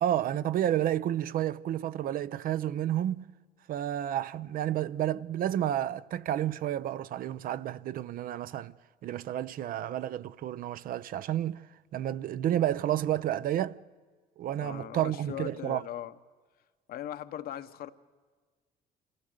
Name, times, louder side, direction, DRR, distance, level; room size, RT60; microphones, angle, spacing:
voice 1, 0.0-3.3 3.7-8.7 9.0-11.6 11.9-13.8 14.4-15.8, right 11 dB, 60° right, 0.5 m, -30 dB
voice 2, 14.6-16.1 16.9-17.9, left 11 dB, 65° left, 0.8 m, -39 dB
26.5 x 15.5 x 6.5 m
cardioid pair, 110°, 17 cm